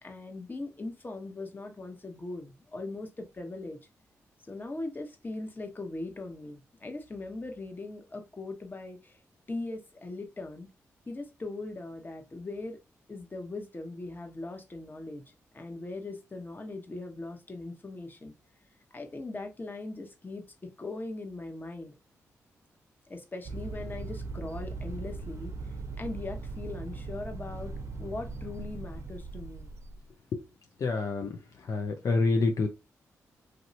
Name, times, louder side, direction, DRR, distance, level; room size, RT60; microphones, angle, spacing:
voice 1, 0.0-3.8 4.5-9.2 9.5-10.7 11.1-12.8 13.1-15.2 15.5-18.3 18.9-21.9 23.1-25.5 26.0-27.7 28.0-29.7, left 2 dB, 30° left, 1.0 m, -40 dB
sound 1, 23.4-30.1, right 3 dB, 55° right, 0.7 m, -39 dB
voice 2, 30.8-31.3 31.7-32.7, left 3 dB, 65° left, 0.6 m, -27 dB
3.2 x 2.6 x 2.7 m
supercardioid pair, 50°, 6 cm